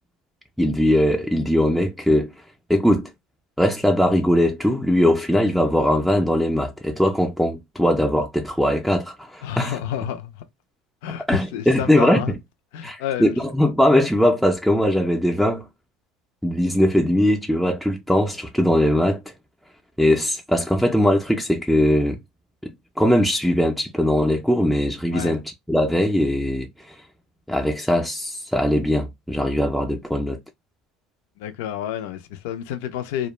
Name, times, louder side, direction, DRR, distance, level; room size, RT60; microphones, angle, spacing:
voice 1, 0.6-2.3 2.7-3.1 3.6-9.8 11.3-12.4 12.8-15.7 16.4-19.2 20.0-22.2 22.6-25.4 25.7-26.9 27.5-30.4, equal, ahead, 0.4 m, -20 dB
voice 2, 9.4-10.3 11.0-12.3 12.7-13.4 25.1-25.3 31.4-33.3, left 10 dB, 80° left, 0.4 m, -29 dB
2.3 x 2.1 x 3.0 m
supercardioid pair, 110°, 0 cm